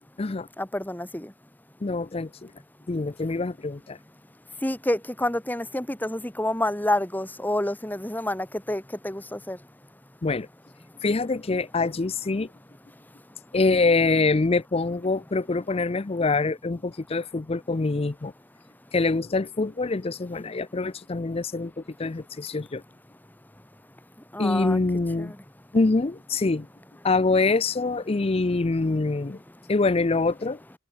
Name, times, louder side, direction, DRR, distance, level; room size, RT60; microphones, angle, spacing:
voice 1, 0.6-1.3 4.6-9.6 24.3-24.8 25.2-25.3, left 1 dB, 10° left, 1.5 m, -28 dB
voice 2, 1.8-2.5 2.9-4.0 10.2-10.5 11.0-12.5 13.5-18.3 18.9-22.8 24.4-25.3 25.7-26.7 27.0-29.4 29.7-30.6, left 3 dB, 30° left, 0.5 m, -25 dB
head